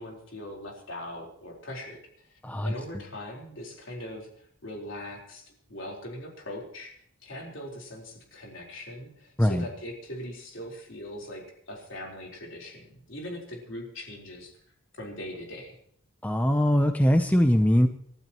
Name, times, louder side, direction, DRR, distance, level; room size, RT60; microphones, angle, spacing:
voice 1, 0.0-6.9 7.2-14.6 14.9-15.8, left 1 dB, 65° left, -1 dB, 4.0 m, -41 dB
voice 2, 16.2-17.9, equal, 5° left, 6 dB, 0.6 m, -21 dB
28.0 x 12.5 x 3.0 m, 0.63 s
head